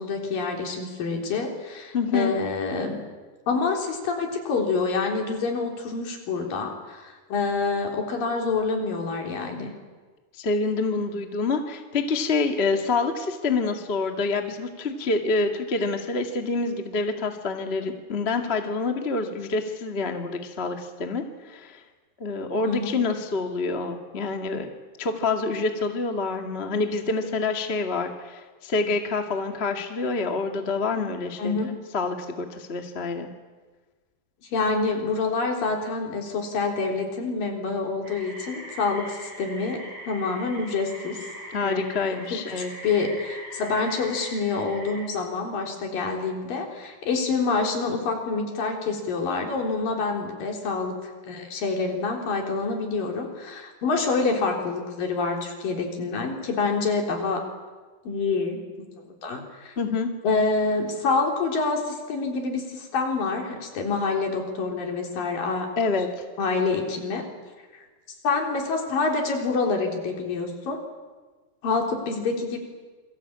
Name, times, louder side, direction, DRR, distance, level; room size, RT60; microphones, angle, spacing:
voice 1, 0.0-3.0 3.5-9.7 22.6-23.0 31.4-31.7 34.5-41.2 41.6-41.9 42.3-57.4 58.0-59.7 60.2-65.7 66.4-67.2 67.7-67.8 68.2-70.8 71.6-72.6, left 4 dB, 60° left, 2 dB, 5.3 m, -27 dB
voice 2, 1.9-2.3 10.4-21.8 22.2-24.7 25.0-31.6 31.9-33.3 41.5-42.7 59.8-60.1 65.8-66.1, left 3 dB, 25° left, 4 dB, 1.3 m, -27 dB
sound 1, 38.0-45.0, right 1 dB, 50° right, 6.4 m, -41 dB
28.0 x 23.5 x 8.8 m, 1.3 s
omnidirectional pair, 4.6 m